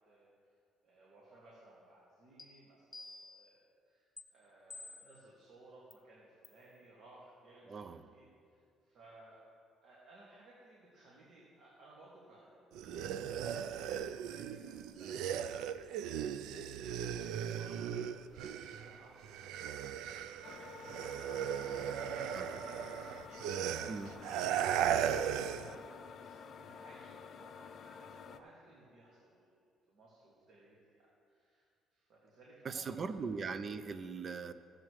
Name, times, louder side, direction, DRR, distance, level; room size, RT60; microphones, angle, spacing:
voice 1, 0.1-0.5 0.8-9.4 9.8-13.0 13.3-17.1 17.4-21.1 21.4-29.5 29.9-33.2, right 2 dB, 60° right, -6 dB, 2.0 m, -60 dB
sound 1, 2.4-2.5 2.9-3.5 4.2-4.3 4.7-5.2 5.9-6.0 6.4-6.7, left 2 dB, 20° left, 1.0 m, -50 dB
voice 2, 7.7-8.0 12.8-13.2 22.3-22.6 23.9-24.1 32.6-34.5, right 5 dB, 40° right, 11 dB, 0.5 m, -40 dB
sound 2, 12.7-19.0 19.2-25.8, right 9 dB, 90° right, 0.3 m, -37 dB
sound 3, 20.4-28.4, left 6 dB, 50° left, 0.5 m, -51 dB
16.0 x 7.6 x 3.2 m, 2.3 s
cardioid pair, 120°, 0 cm